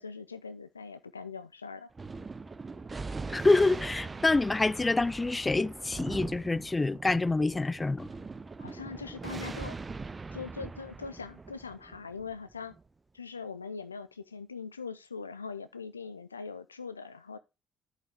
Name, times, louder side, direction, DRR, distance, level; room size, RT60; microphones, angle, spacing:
voice 1, 0.0-1.9 8.6-9.8 10.3-12.8 13.1-17.4, left 5 dB, 85° left, 0.4 m, -41 dB
Thunder, 1.9-12.8, right 3 dB, 25° right, 0.7 m, -41 dB
voice 2, 3.3-8.1, left 3 dB, 20° left, 0.4 m, -26 dB
11.0 x 6.4 x 3.4 m
figure-of-eight pair, 45°, 0 cm